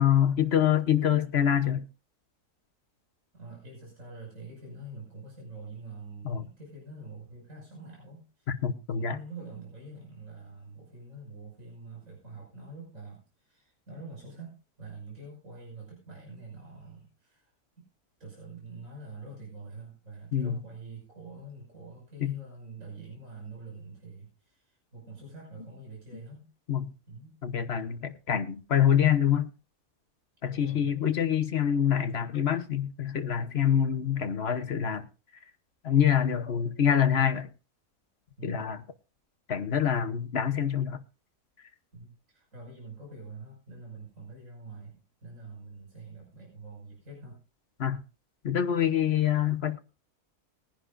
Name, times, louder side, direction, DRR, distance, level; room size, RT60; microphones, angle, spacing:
voice 1, 0.0-1.8 6.2-6.5 8.5-9.2 20.3-20.6 22.2-22.3 26.7-26.9 27.4-29.5 30.4-35.1 35.8-37.5 38.4-38.8 39.5-41.0 47.8-48.0 48.4-49.8, left 9 dB, 45° left, 1.1 m, -26 dB
voice 2, 3.3-8.5 8.9-17.5 18.2-26.5 27.1-27.4 30.5-31.2 38.4-38.8 41.9-47.4, right 3 dB, 55° right, 6.2 m, -46 dB
21.0 x 10.5 x 2.5 m
omnidirectional pair, 1.7 m